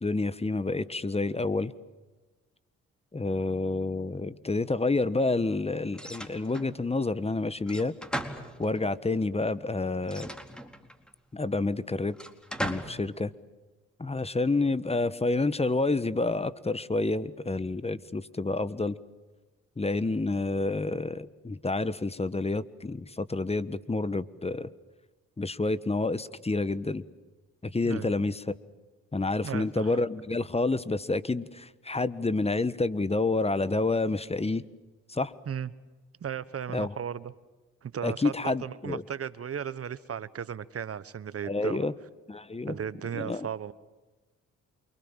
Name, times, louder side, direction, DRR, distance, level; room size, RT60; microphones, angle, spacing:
voice 1, 0.0-1.7 3.1-7.9 8.6-10.3 11.3-12.1 12.6-13.3 14.0-18.9 19.8-24.7 25.4-27.0 27.6-28.4 29.1-34.6 35.1-35.3 36.7-36.9 38.0-39.0 41.5-41.9 42.3-42.8 43.1-43.5, left 3 dB, 20° left, 16 dB, 1.4 m, -29 dB
sound 1, 5.9-6.8 7.7-9.0 10.0-11.1 12.1-13.0, equal, 5° left, 4.2 m, -37 dB
voice 2, 29.4-30.0 35.4-35.7 36.2-37.3 37.8-41.8 42.7-43.7, right 8 dB, 50° right, 16 dB, 1.4 m, -36 dB
28.5 x 25.0 x 7.5 m, 1.2 s
supercardioid pair, 55°, 29 cm